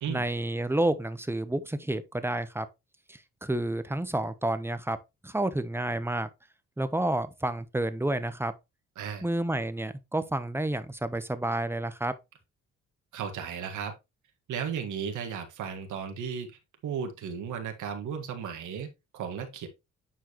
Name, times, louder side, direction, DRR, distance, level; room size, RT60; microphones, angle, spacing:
voice 1, 0.1-2.7 3.1-5.0 5.2-6.3 6.8-8.5 9.2-12.1, right 1 dB, 10° right, 0.8 m, -30 dB
voice 2, 13.1-13.9 14.5-16.5 16.8-19.7, right 7 dB, 80° right, 1.7 m, -35 dB
9.2 x 4.7 x 3.0 m
cardioid pair, 90°, 30 cm